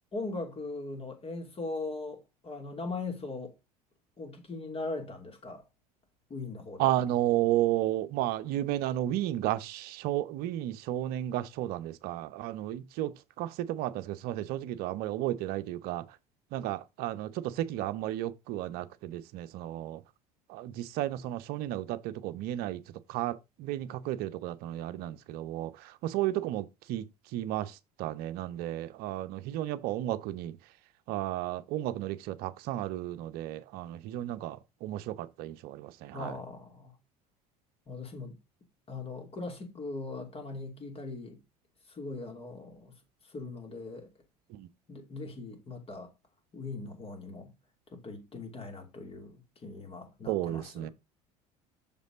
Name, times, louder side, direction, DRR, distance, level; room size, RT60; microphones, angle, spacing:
voice 1, 0.1-2.2 2.4-3.5 4.2-5.6 6.3-6.9 36.1-36.9 37.9-38.4 38.9-41.4 41.9-42.9 43.3-44.1 44.9-46.1 46.5-47.5 47.9-50.9, left 3 dB, 30° left, 2.8 m, -40 dB
voice 2, 6.8-16.2 16.5-20.0 20.5-22.8 23.1-30.5 31.1-36.3 44.5-44.7 50.3-50.9, right 14 dB, 50° right, 0.8 m, -33 dB
7.0 x 5.2 x 4.0 m
figure-of-eight pair, 70°, 20 cm